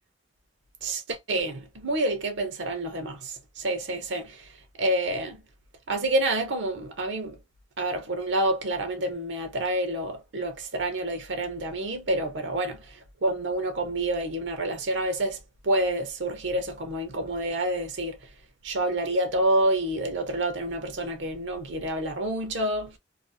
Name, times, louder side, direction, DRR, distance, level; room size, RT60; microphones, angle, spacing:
voice 1, 0.8-5.4 5.9-7.4 7.8-15.4 15.6-18.2 18.6-23.0, right 1 dB, 75° right, 0.7 m, -28 dB
2.5 x 2.4 x 2.6 m
head